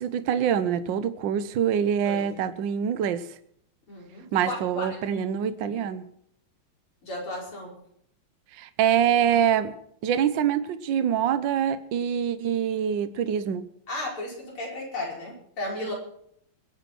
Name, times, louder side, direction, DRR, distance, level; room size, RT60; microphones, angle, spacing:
voice 1, 0.0-3.3 4.3-6.0 8.6-9.7 10.0-13.7, right 9 dB, 65° right, 1.5 m, -25 dB
voice 2, 3.9-5.2 5.7-5.8 7.0-7.7 13.9-15.9, left 1 dB, 80° left, 6.2 m, -34 dB
22.0 x 8.8 x 6.0 m
omnidirectional pair, 2.3 m